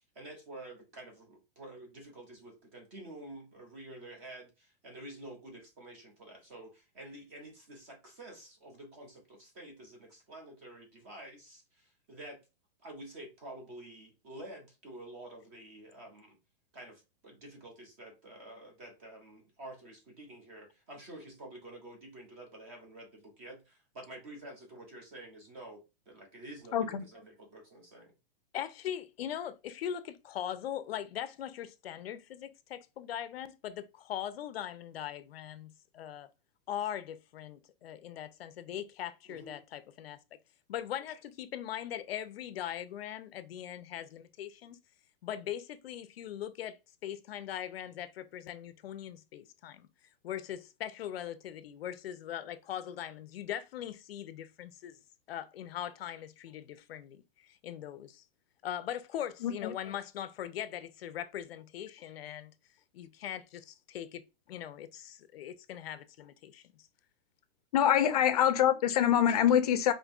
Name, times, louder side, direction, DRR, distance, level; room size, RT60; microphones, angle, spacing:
voice 1, 0.0-12.4 12.8-16.4 16.7-28.1 39.2-39.6, right 1 dB, 15° right, 0.4 m, -49 dB
voice 2, 26.7-27.0 59.4-59.7 67.7-69.9, left 10 dB, 40° left, 0.5 m, -25 dB
voice 3, 28.5-36.3 36.7-40.2 40.7-44.8 45.2-46.8 47.0-49.9 50.2-54.9 55.3-58.2 58.6-62.5 62.9-66.6, left 10 dB, 90° left, 0.6 m, -40 dB
5.0 x 2.6 x 2.4 m
supercardioid pair, 175°, 30 cm